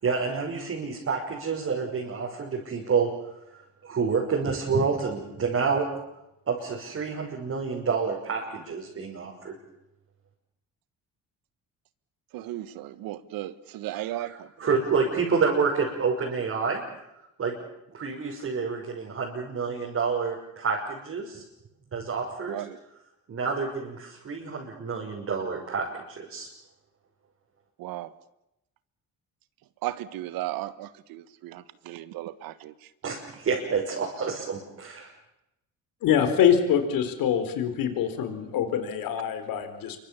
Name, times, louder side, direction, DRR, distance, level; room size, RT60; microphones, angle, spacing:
voice 1, 0.0-3.1 3.8-5.9 6.5-9.6 14.1-16.8 17.4-17.6 17.9-21.4 21.9-22.7 23.3-26.5 33.0-35.1, right 5 dB, 45° right, -2 dB, 5.9 m, -28 dB
voice 2, 12.3-14.5 22.5-22.8 27.8-28.1 29.8-32.7, right 14 dB, 85° right, 15 dB, 1.5 m, -35 dB
voice 3, 36.0-40.0, left 8 dB, 75° left, 9 dB, 4.2 m, -24 dB
27.5 x 24.0 x 7.2 m, 0.85 s
cardioid pair, 110°, 34 cm